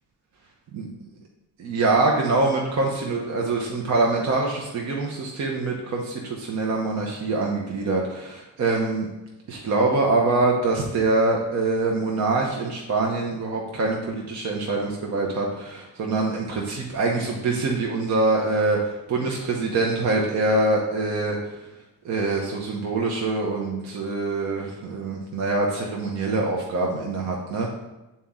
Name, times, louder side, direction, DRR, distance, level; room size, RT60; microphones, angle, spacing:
voice 1, 1.6-9.1 9.5-21.6 22.0-27.7, right 3 dB, 50° right, -1 dB, 0.9 m, -24 dB
7.4 x 4.2 x 3.7 m, 1.0 s
cardioid pair, 160°, 37 cm